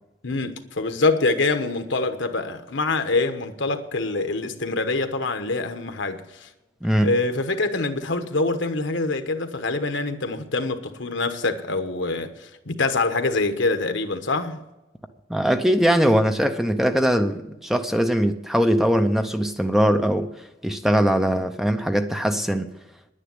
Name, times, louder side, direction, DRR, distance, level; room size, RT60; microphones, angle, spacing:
voice 1, 0.2-6.5 7.0-14.6, left 3 dB, 70° left, 1.2 m, -25 dB
voice 2, 6.8-7.1 15.3-22.7, equal, ahead, 0.6 m, -21 dB
10.5 x 10.0 x 7.7 m
head